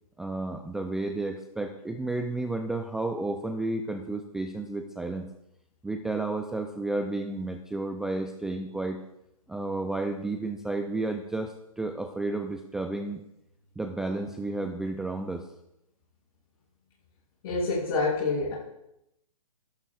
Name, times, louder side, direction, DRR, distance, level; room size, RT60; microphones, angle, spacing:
voice 1, 0.2-5.3 5.8-9.0 9.5-13.2 13.8-15.5, right 2 dB, 5° right, 5 dB, 0.3 m, -32 dB
voice 2, 17.4-18.5, left 3 dB, 45° left, -9 dB, 5.8 m, -27 dB
23.0 x 12.0 x 2.3 m, 0.84 s
hypercardioid pair, 135°, 19 cm